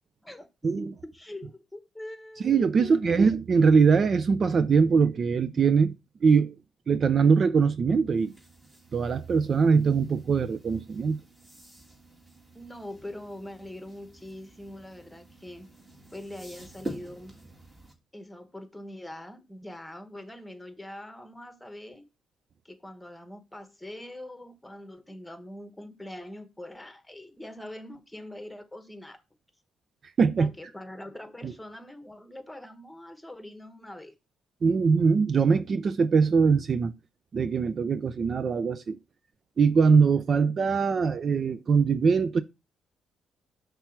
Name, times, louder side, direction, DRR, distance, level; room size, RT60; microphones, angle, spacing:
voice 1, 0.2-3.2 12.5-15.7 16.1-17.3 18.1-22.1 22.6-29.2 30.4-34.2, left 1 dB, 5° left, 1.2 m, -43 dB
voice 2, 2.4-5.9 6.2-6.5 6.9-8.3 8.9-11.2 30.2-30.5 31.4-31.5 34.6-36.9 37.3-39.0 39.6-42.4, right 5 dB, 45° right, 0.4 m, -22 dB
sound 1, 8.1-17.9, right 1 dB, 20° right, 2.2 m, -47 dB
5.9 x 3.3 x 5.8 m
cardioid pair, 90°, 0 cm